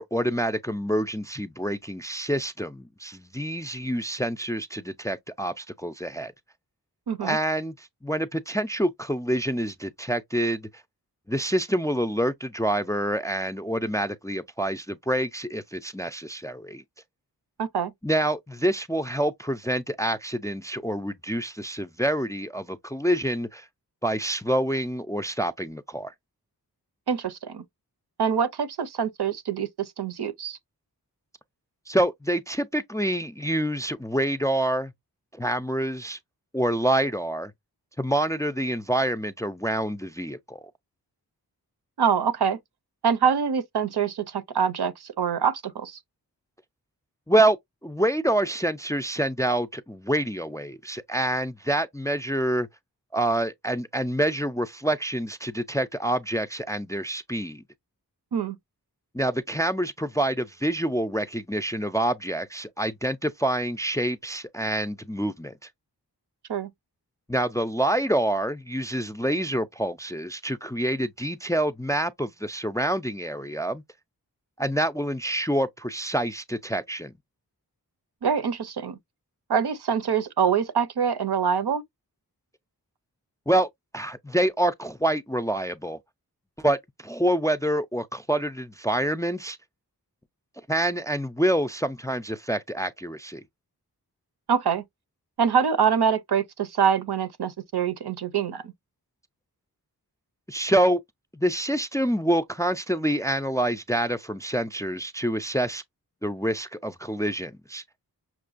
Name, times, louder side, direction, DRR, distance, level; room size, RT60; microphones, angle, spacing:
voice 1, 0.0-6.3 7.2-10.7 11.3-16.8 18.0-23.7 24.0-26.1 31.9-34.9 35.3-36.2 36.5-37.5 38.0-40.6 47.3-47.6 47.8-52.7 53.1-57.6 59.1-65.7 67.3-73.8 74.6-77.1 83.5-86.0 86.6-86.8 87.0-89.6 90.7-93.4 100.5-101.0 101.3-105.8 106.2-107.8, right 1 dB, 10° left, 0.3 m, -27 dB
voice 2, 7.1-7.4 17.6-17.9 27.1-27.6 28.2-30.6 42.0-42.6 43.0-46.0 58.3-58.6 66.5-66.7 78.2-79.0 79.5-81.8 94.5-94.8 95.4-98.7, right 7 dB, 75° right, 0.6 m, -25 dB
5.9 x 2.2 x 2.4 m
wide cardioid pair, 45°, 39 cm